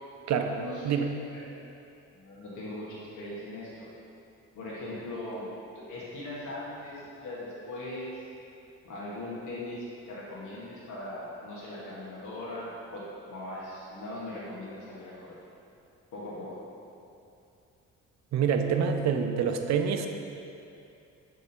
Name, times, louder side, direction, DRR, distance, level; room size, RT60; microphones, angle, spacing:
voice 1, 0.3-1.4 2.1-3.9 4.5-5.5 5.7-8.2 8.8-15.4 16.1-16.6, left 1 dB, 75° left, -7 dB, 1.4 m, -40 dB
voice 2, 18.3-20.1, right 7 dB, 65° right, 6 dB, 0.5 m, -26 dB
6.8 x 3.6 x 4.3 m, 2.7 s
cardioid pair, 90°, 30 cm